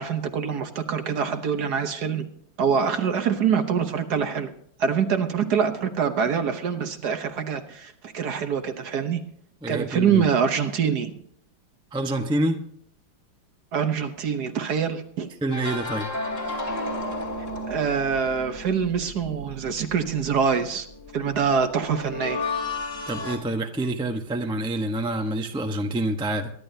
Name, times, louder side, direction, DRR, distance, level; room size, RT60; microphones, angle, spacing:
voice 1, 0.0-2.3 2.6-4.5 4.8-9.2 9.7-11.2 13.7-15.3 17.7-20.9 21.1-22.4, right 6 dB, 60° right, 8 dB, 1.5 m, -25 dB
voice 2, 9.6-10.2 11.9-12.6 15.4-16.1 16.5-16.6 23.1-26.5, right 1 dB, 5° right, 5 dB, 0.6 m, -27 dB
sound 1, 15.5-23.4, left 2 dB, 40° left, 2.9 m, -33 dB
23.5 x 11.0 x 2.8 m, 0.68 s
omnidirectional pair, 2.1 m